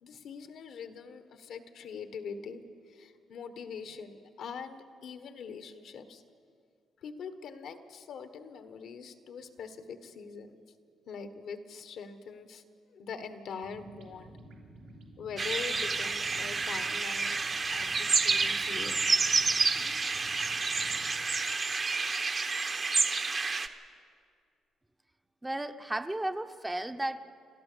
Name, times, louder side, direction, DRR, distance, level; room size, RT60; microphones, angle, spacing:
voice 1, 0.0-6.2 7.0-10.5 11.1-12.6 12.9-14.4 15.2-17.4 17.7-19.0, left 6 dB, 70° left, 9 dB, 1.4 m, -43 dB
sound 1, 13.5-21.1, right 1 dB, 85° right, 3.4 m, -52 dB
sound 2, 15.4-23.7, right 4 dB, 35° right, 1.1 m, -29 dB
voice 2, 25.4-27.2, right 1 dB, 10° right, 8 dB, 0.9 m, -34 dB
29.5 x 12.5 x 6.9 m, 2.3 s
cardioid pair, 90°, 0 cm